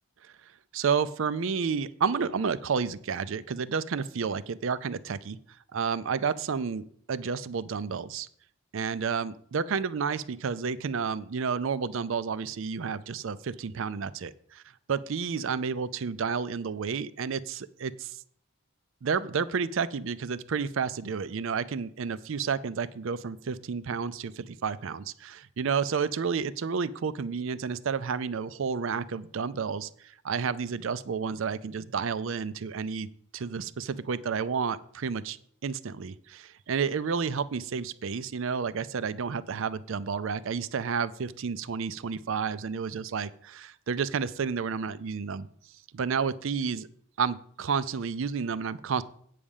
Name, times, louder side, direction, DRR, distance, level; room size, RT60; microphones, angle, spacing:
voice 1, 0.7-5.4 5.7-8.3 8.7-14.6 14.9-18.2 19.0-33.1 33.3-35.4 35.6-45.5 45.9-46.9 47.2-49.0, right 6 dB, 65° right, 16 dB, 0.4 m, -31 dB
8.6 x 5.0 x 7.2 m, 0.62 s
head